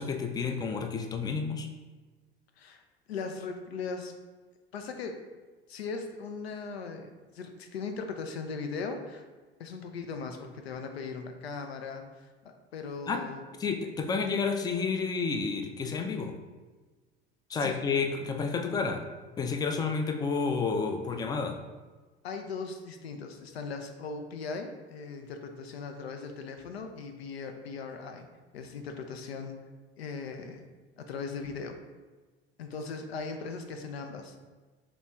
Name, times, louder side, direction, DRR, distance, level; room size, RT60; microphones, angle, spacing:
voice 1, 0.0-1.7 13.1-13.2 13.6-16.3 17.5-19.0 19.4-21.6, left 5 dB, 15° left, 5 dB, 0.3 m, -30 dB
voice 2, 3.1-4.1 4.7-5.2 5.7-7.1 7.3-9.2 9.6-12.3 12.7-13.4 17.5-17.8 22.2-28.3 28.5-29.6 30.0-30.7 31.0-31.8 32.6-34.4, left 4 dB, 80° left, 6 dB, 0.5 m, -38 dB
3.0 x 2.9 x 3.4 m, 1.3 s
figure-of-eight pair, 65°, 31 cm